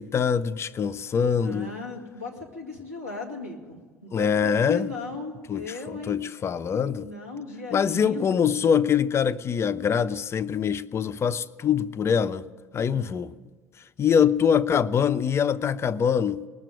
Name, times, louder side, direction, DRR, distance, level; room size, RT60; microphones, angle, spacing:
voice 1, 0.0-1.7 4.1-4.9 5.5-7.1 7.7-12.5 12.7-13.3 14.0-16.4, left 7 dB, 30° left, 0.5 m, -24 dB
voice 2, 1.3-6.2 7.0-8.5 12.9-13.2, left 3 dB, 90° right, 2.1 m, -37 dB
19.5 x 7.4 x 10.0 m
figure-of-eight pair, 60°, 8 cm